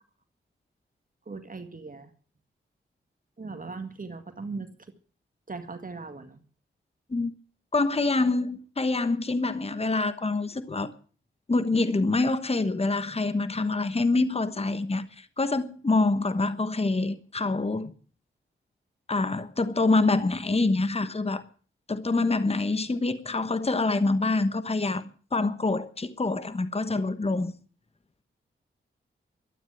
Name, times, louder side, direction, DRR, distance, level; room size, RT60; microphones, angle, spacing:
voice 1, 1.3-2.1 3.4-4.9 5.5-6.4, right 4 dB, 40° right, 1.9 m, -39 dB
voice 2, 7.7-10.9 11.5-17.9 19.1-21.4 21.9-27.5, left 3 dB, 30° left, 1.2 m, -26 dB
13.0 x 9.2 x 9.1 m
cardioid pair, 50°, 21 cm